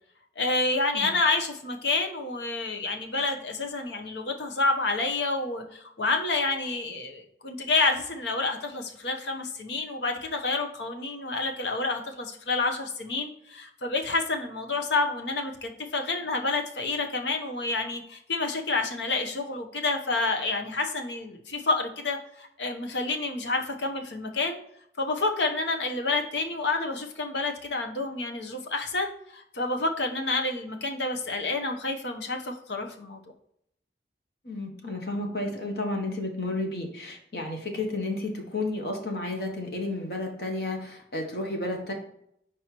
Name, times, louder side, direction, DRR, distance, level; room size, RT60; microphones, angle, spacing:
voice 1, 0.4-24.6 25.0-33.2, left 3 dB, 85° left, 4 dB, 1.0 m, -29 dB
voice 2, 34.4-41.9, left 2 dB, 65° left, 2 dB, 1.4 m, -32 dB
4.7 x 4.4 x 4.5 m, 0.73 s
head